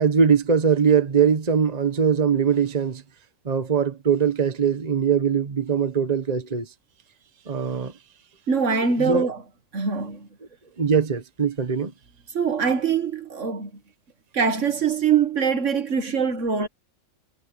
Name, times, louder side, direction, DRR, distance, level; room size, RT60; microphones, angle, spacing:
voice 1, 0.0-3.0 3.4-6.7 7.5-7.9 9.0-9.3 10.8-11.9, right 6 dB, 30° right, 1.4 m, -21 dB
voice 2, 8.5-9.4 9.7-10.3 12.3-13.7 14.3-16.7, right 6 dB, 60° right, 1.8 m, -23 dB
omnidirectional pair, 1.5 m